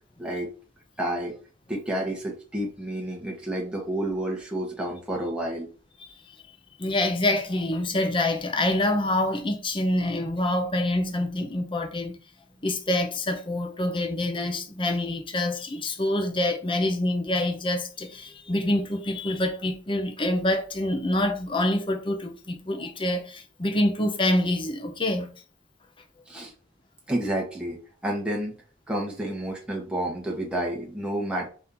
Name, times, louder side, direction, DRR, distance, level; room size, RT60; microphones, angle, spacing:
voice 1, 0.2-0.5 1.0-1.3 1.7-5.7 26.3-26.5 27.1-28.5 28.9-31.5, right 1 dB, 5° right, 1.1 m, -30 dB
voice 2, 6.0-6.4 6.8-12.1 12.6-25.3, left 1 dB, 25° left, 0.7 m, -26 dB
4.3 x 2.7 x 3.7 m
head